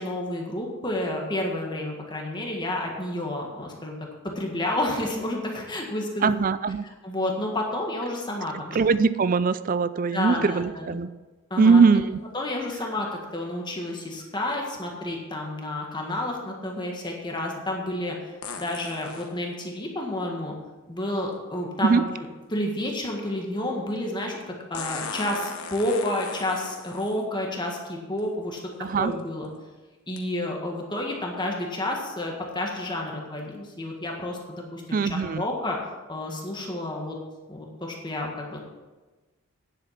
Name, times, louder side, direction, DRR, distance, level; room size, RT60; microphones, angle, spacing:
voice 1, 0.0-4.0 4.3-6.3 7.0-8.8 10.1-11.0 11.5-11.8 12.3-20.5 20.9-22.0 22.5-28.6 29.0-29.5 30.1-35.8 36.1-37.2 37.5-38.6, left 1 dB, 20° left, 0 dB, 1.6 m, -30 dB
voice 2, 6.2-6.9 8.7-11.1 11.6-12.2 21.8-22.0 28.8-29.1 34.9-35.4, right 5 dB, 40° right, 14 dB, 0.4 m, -21 dB
sound 1, 12.0-12.1 18.4-19.3 21.3-21.4 24.7-27.2 28.2-28.3 28.9-29.2 30.2-30.3, left 5 dB, 85° left, 1.2 m, -37 dB
10.0 x 7.6 x 5.8 m, 1.2 s
head